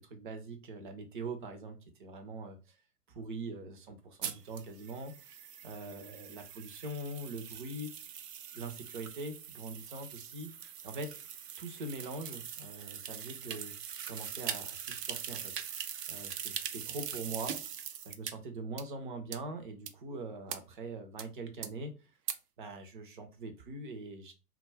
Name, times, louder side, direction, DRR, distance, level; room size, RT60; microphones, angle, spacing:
voice 1, 0.0-2.8 3.1-7.9 8.5-10.5 10.8-11.1 11.6-15.5 16.1-17.8 18.0-21.9 22.6-24.3, right 2 dB, 35° right, 6 dB, 0.5 m, -43 dB
sound 1, 4.2-18.3 18.8-18.9 19.3-19.4 19.9-20.0 20.5-20.6 21.2-21.3 21.6-21.7 22.3-22.4, right 8 dB, 80° right, 0.5 m, -42 dB
2.2 x 2.1 x 3.2 m, 0.30 s
figure-of-eight pair, 115°, 47 cm